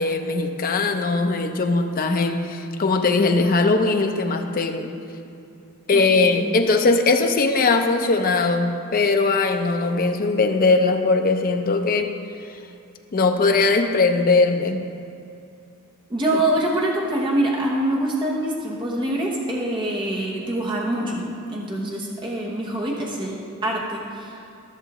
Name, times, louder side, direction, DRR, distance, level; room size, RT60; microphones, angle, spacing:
voice 1, 0.0-4.9 5.9-12.1 13.1-14.8, left 3 dB, 40° left, 5 dB, 0.6 m, -20 dB
voice 2, 5.9-6.4 16.1-21.2 21.5-24.3, right 1 dB, 20° right, -3 dB, 1.0 m, -25 dB
14.0 x 6.5 x 3.0 m, 2.6 s
head